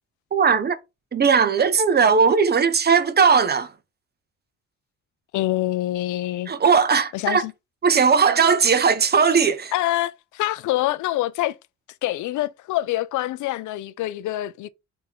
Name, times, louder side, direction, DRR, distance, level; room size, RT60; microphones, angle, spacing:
voice 1, 0.3-0.8 1.1-3.7 6.5-7.4 7.8-9.7, right 5 dB, 35° right, 0.7 m, -18 dB
voice 2, 5.3-6.5 7.1-7.5 9.7-11.6 12.0-14.7, left 15 dB, 75° left, 0.5 m, -25 dB
4.3 x 2.8 x 3.6 m
cardioid pair, 90°, 30 cm